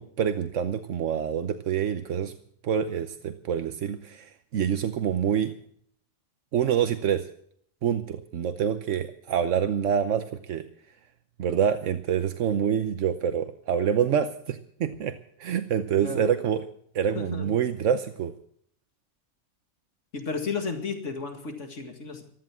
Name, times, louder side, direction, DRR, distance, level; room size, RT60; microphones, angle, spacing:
voice 1, 0.0-2.3 2.6-5.5 6.5-7.3 7.8-10.7 11.4-16.6 16.9-18.3, right 8 dB, 80° right, 10 dB, 1.2 m, -26 dB
voice 2, 16.0-16.4 17.1-17.5 20.1-22.2, left 4 dB, 85° left, 5 dB, 2.3 m, -33 dB
15.0 x 13.5 x 6.1 m, 0.64 s
omnidirectional pair, 1.2 m